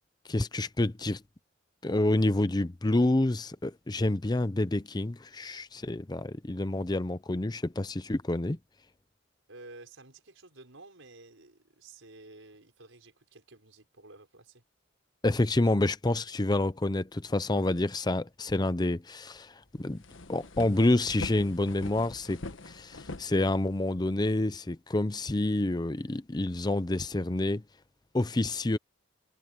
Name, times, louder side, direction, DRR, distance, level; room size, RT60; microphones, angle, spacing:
voice 1, 0.3-1.2 1.8-8.6 15.2-20.0 20.3-27.6 28.1-28.8, left 2 dB, 20° left, 0.6 m, -28 dB
voice 2, 9.5-14.6, right 2 dB, 80° right, 5.0 m, -52 dB
sound 1, 19.4-19.5 19.8-24.0, left 2 dB, 75° left, 1.3 m, -43 dB
head